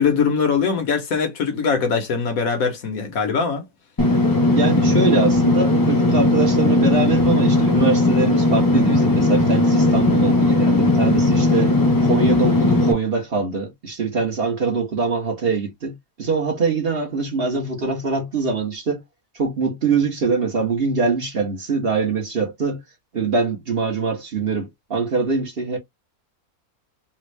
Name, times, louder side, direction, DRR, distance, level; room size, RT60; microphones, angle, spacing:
voice 1, 0.0-3.6, left 5 dB, 65° left, 1.3 m, -21 dB
Engine / Mechanisms, 4.0-12.9, left 2 dB, 25° left, 0.5 m, -17 dB
voice 2, 4.5-11.7 12.0-19.0 19.4-22.8 23.1-25.8, right 4 dB, 40° right, 1.3 m, -23 dB
3.5 x 2.4 x 3.1 m
omnidirectional pair, 1.6 m